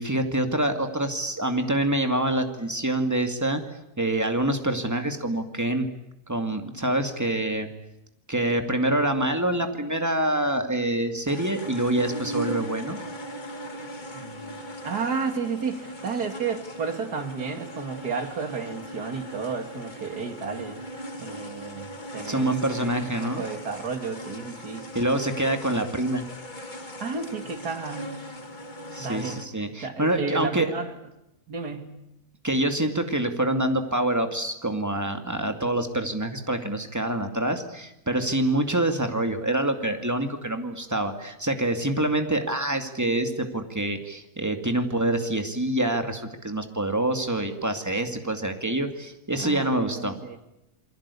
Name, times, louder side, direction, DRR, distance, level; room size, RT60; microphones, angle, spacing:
voice 1, 0.0-3.6 4.0-5.9 6.3-7.7 8.3-13.0 22.2-23.4 24.9-26.2 28.9-30.7 32.4-50.2, right 1 dB, 10° right, 6 dB, 2.3 m, -26 dB
sound 1, 11.3-29.5, equal, 30° left, 1.9 m, -39 dB
voice 2, 14.1-14.6 14.8-20.8 21.2-22.5 22.8-22.9 23.4-24.9 27.0-28.2 29.0-29.4 29.8-30.9 31.5-32.0 49.4-50.4, right 5 dB, 85° right, 6 dB, 2.9 m, -32 dB
28.5 x 23.0 x 8.5 m, 0.88 s
omnidirectional pair, 1.6 m